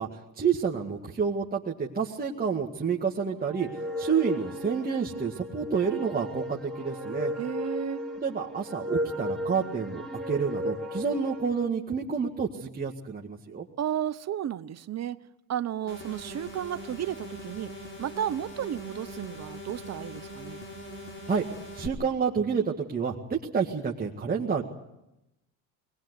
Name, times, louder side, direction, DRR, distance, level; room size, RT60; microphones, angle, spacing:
voice 1, 0.0-7.3 8.2-13.7 21.3-21.4 21.7-24.6, right 6 dB, 25° right, 1.9 m, -29 dB
sound 1, 3.5-11.7, left 1 dB, ahead, 3.7 m, -35 dB
voice 2, 7.4-8.0 13.8-15.2 15.5-20.6, right 10 dB, 45° right, 0.9 m, -33 dB
sound 2, 15.9-21.9, equal, 30° left, 4.8 m, -42 dB
22.0 x 19.5 x 8.2 m
supercardioid pair, 85°, 38 cm